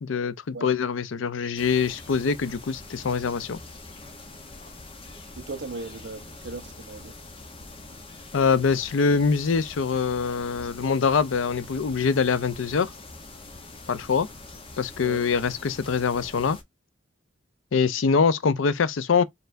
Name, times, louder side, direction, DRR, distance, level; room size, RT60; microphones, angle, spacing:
voice 1, 0.0-3.6 8.3-12.9 13.9-14.3 14.8-16.6 17.7-19.2, left 5 dB, 75° left, 0.4 m, -24 dB
sound 1, 1.6-16.6, left 2 dB, 25° left, 0.7 m, -44 dB
voice 2, 5.4-7.2 15.0-15.2, right 3 dB, 60° right, 0.6 m, -37 dB
4.4 x 3.3 x 2.5 m
head